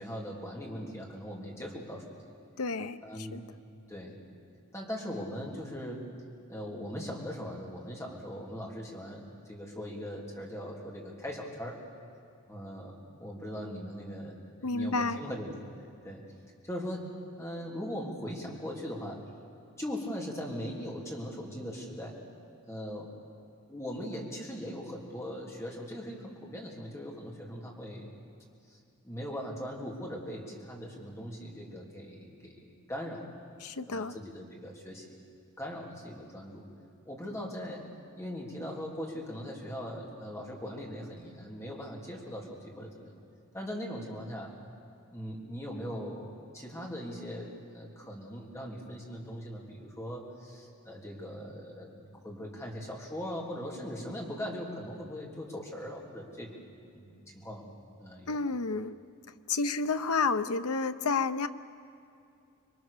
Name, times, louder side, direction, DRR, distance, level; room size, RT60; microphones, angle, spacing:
voice 1, 0.0-2.3 3.0-3.4 3.9-4.2 4.7-6.1 6.5-11.8 12.5-15.5 16.0-16.2 16.6-17.1 17.4-19.2 19.8-22.2 22.7-23.1 23.7-28.1 28.7-28.8 29.0-33.2 33.8-35.2 35.6-36.7 37.1-37.8 38.1-43.2 43.5-44.5 45.1-56.6 56.9-57.7 58.0-58.4, equal, 15° left, -2 dB, 3.5 m, -40 dB
voice 2, 2.6-3.4 14.6-15.2 33.6-34.1 58.3-58.9 59.5-61.5, left 4 dB, 85° left, 10 dB, 0.8 m, -30 dB
26.0 x 22.0 x 6.8 m, 2.5 s
head